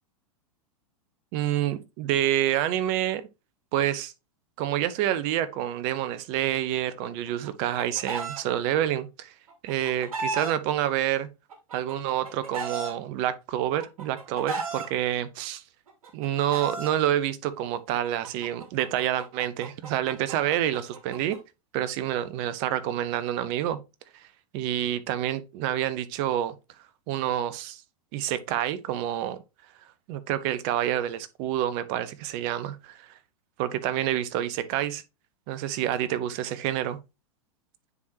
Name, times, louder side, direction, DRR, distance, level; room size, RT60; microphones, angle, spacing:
voice 1, 1.3-3.3 3.7-4.1 4.6-9.3 9.6-11.3 11.7-15.6 16.1-21.4 21.7-23.8 24.5-26.5 27.1-27.8 28.1-29.4 30.1-33.1 33.6-35.0 35.5-37.0, right 12 dB, 45° right, 0.8 m, -28 dB
Chicken rooster, 7.3-8.4 9.5-10.5 11.5-12.9 13.8-14.9 15.9-16.9 18.0-21.4, right 4 dB, 75° right, 2.3 m, -35 dB
9.4 x 3.7 x 2.8 m
hypercardioid pair, 105°, 18 cm